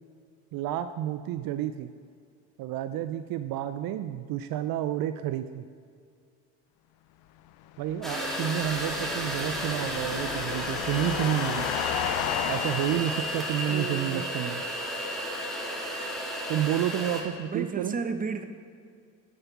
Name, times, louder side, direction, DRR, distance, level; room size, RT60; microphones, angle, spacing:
voice 1, 0.5-1.9 2.6-5.7 7.8-11.7 12.5-14.6 16.5-18.0, right 12 dB, 65° right, 11 dB, 0.5 m, -30 dB
sound 1, 7.7-14.1, left 12 dB, 75° left, 0.6 m, -34 dB
sound 2, 8.0-17.2, equal, ahead, 1.9 m, -33 dB
voice 2, 13.7-14.3 17.5-18.4, right 5 dB, 20° right, 8 dB, 0.8 m, -33 dB
11.0 x 5.5 x 5.8 m, 2.2 s
supercardioid pair, 80°, 38 cm